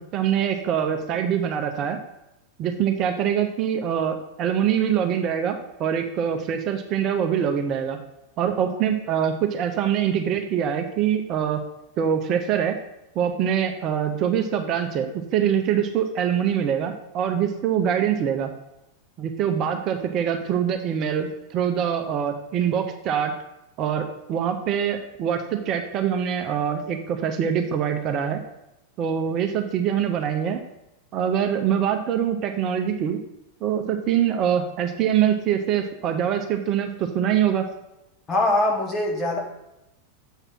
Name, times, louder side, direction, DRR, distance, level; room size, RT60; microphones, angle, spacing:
voice 1, 0.1-2.0 2.6-8.0 8.4-11.6 12.0-12.7 13.2-18.5 19.2-23.3 23.8-28.4 29.0-30.6 31.1-33.2 33.6-37.6, right 8 dB, 35° right, 5 dB, 0.5 m, -24 dB
voice 2, 38.3-39.4, left 1 dB, 20° left, 0 dB, 1.5 m, -22 dB
7.2 x 3.3 x 5.9 m, 0.90 s
figure-of-eight pair, 90°, 0 cm